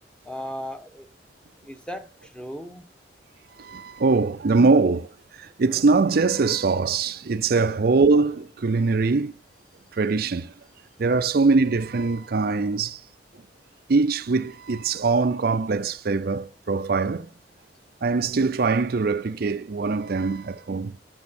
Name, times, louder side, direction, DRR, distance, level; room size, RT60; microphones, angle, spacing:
voice 1, 0.2-1.1 1.6-2.9, equal, 5° left, 1.2 m, -36 dB
voice 2, 3.6-9.3 10.0-10.5 11.0-13.0 13.9-17.3 18.0-21.0, right 4 dB, 55° right, 0.5 m, -22 dB
10.5 x 7.7 x 4.3 m
head